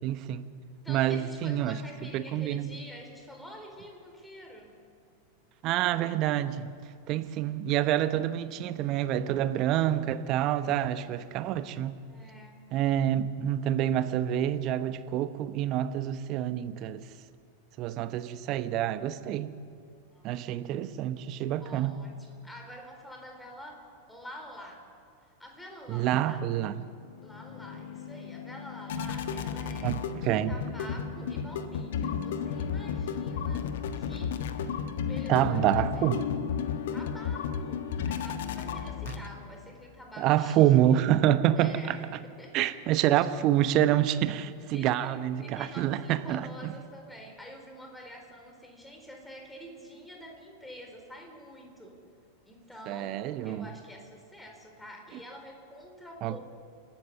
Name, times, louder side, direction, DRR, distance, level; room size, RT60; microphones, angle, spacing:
voice 1, 0.0-0.5 0.9-1.7 2.1-2.7 5.6-6.7 7.1-12.0 12.7-17.0 17.8-19.5 20.2-21.9 25.9-26.8 29.8-30.5 35.3-36.2 39.1-39.2 40.2-42.0 42.5-46.5 52.9-53.7 56.2-56.4, right 12 dB, 40° right, 12 dB, 1.0 m, -27 dB
voice 2, 0.8-4.7 12.1-12.6 20.1-20.5 21.6-24.8 25.4-26.5 27.2-30.0 30.5-33.7 34.0-34.4 35.0-36.1 36.9-41.0 41.6-42.7 43.2-43.5 44.7-52.0 52.5-56.4, equal, 5° left, 2 dB, 4.1 m, -47 dB
sound 1, 26.8-39.6, left 7 dB, 55° left, 1.3 m, -33 dB
29.5 x 13.5 x 6.8 m, 2.3 s
figure-of-eight pair, 90°, 0 cm